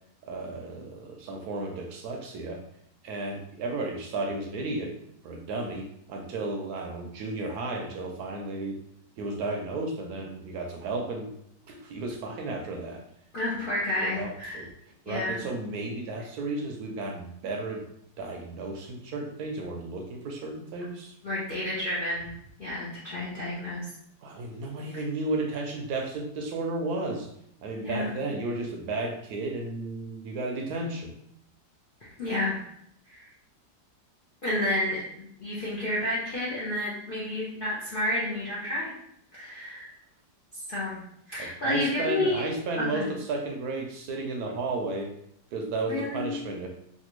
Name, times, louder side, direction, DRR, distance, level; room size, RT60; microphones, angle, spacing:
voice 1, 0.3-2.6 3.0-4.9 5.2-8.8 9.2-11.3 11.7-13.0 14.0-14.7 15.1-17.9 18.2-21.1 24.2-27.3 27.6-31.1 41.4-45.1 45.5-46.7, right 2 dB, 75° right, 2 dB, 1.0 m, -33 dB
voice 2, 13.3-14.6 15.0-15.4 21.2-22.3 22.6-23.9 24.9-25.0 27.8-28.2 32.0-32.6 33.1-33.3 34.4-35.0 35.4-38.9 39.3-39.9 40.7-41.0 41.3-42.4 42.8-43.1 45.9-46.4, left 1 dB, 55° left, -7 dB, 0.5 m, -30 dB
3.3 x 2.5 x 3.0 m, 0.72 s
omnidirectional pair, 1.8 m